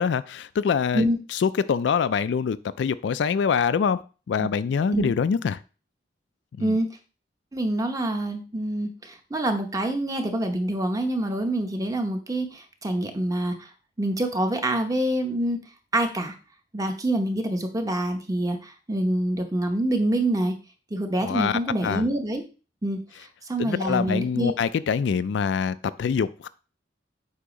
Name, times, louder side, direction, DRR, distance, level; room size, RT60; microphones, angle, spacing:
voice 1, 0.0-5.6 6.5-6.8 21.2-22.1 23.6-26.5, left 6 dB, 70° left, 0.3 m, -25 dB
voice 2, 7.5-13.7 14.0-15.6 15.9-16.3 16.7-20.5 20.9-22.4 22.8-23.0 23.5-24.5, right 1 dB, 20° right, 0.9 m, -26 dB
8.3 x 2.8 x 5.1 m
head